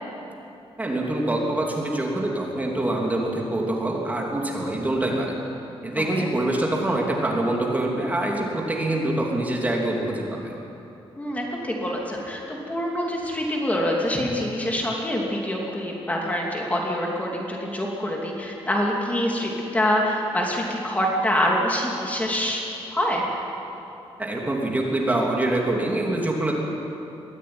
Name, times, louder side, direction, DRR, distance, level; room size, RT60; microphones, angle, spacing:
voice 1, 0.8-5.4 5.8-10.5 24.2-26.5, right 1 dB, 15° right, -1 dB, 3.1 m, -25 dB
voice 2, 5.9-6.3 11.2-22.6 22.9-23.3, equal, 15° left, -2 dB, 2.9 m, -25 dB
23.0 x 16.0 x 9.7 m, 2.9 s
wide cardioid pair, 150°, 10 cm